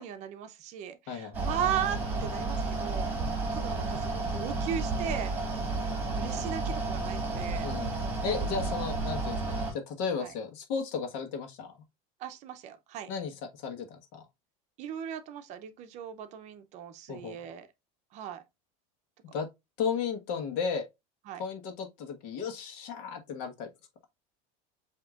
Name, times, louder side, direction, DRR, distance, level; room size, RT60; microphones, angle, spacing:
voice 1, 0.0-3.2 3.5-5.3 6.1-7.7 10.2-10.3 12.2-13.1 14.8-17.7 18.1-18.4 21.3-21.4, right 9 dB, 40° right, 0.6 m, -37 dB
voice 2, 1.1-1.4 7.6-8.0 8.2-11.7 13.1-14.2 17.1-17.4 19.3-19.5 19.8-20.9 21.4-23.7, left 6 dB, 65° left, 1.4 m, -34 dB
Mechanical fan, 1.3-9.7, right 3 dB, 10° right, 1.6 m, -32 dB
7.7 x 2.9 x 2.4 m
cardioid pair, 165°, 18 cm